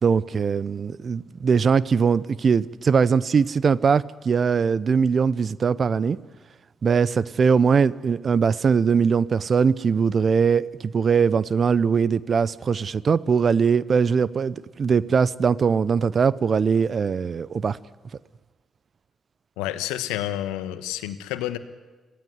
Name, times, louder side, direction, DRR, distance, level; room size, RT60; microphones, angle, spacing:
voice 1, 0.0-6.2 6.8-17.8, right 6 dB, 50° right, 0.7 m, -21 dB
voice 2, 19.6-21.6, left 13 dB, 80° left, 1.2 m, -29 dB
26.0 x 17.0 x 9.6 m
hypercardioid pair, 45°, 0 cm